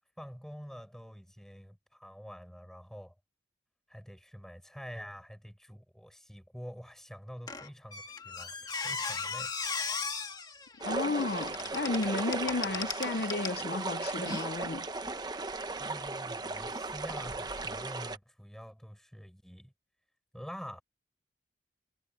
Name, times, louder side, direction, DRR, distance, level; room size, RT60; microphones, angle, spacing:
voice 1, 0.2-3.1 3.9-9.5 11.0-11.1 15.8-19.7 20.3-20.8, equal, 5° left, 6.9 m, -47 dB
Squeak, 7.5-13.6 14.2-14.4, left 5 dB, 25° left, 1.7 m, -38 dB
voice 2, 10.8-14.9, left 3 dB, 60° left, 0.6 m, -33 dB
sound 1, 10.8-18.2, right 3 dB, 25° right, 0.9 m, -36 dB
head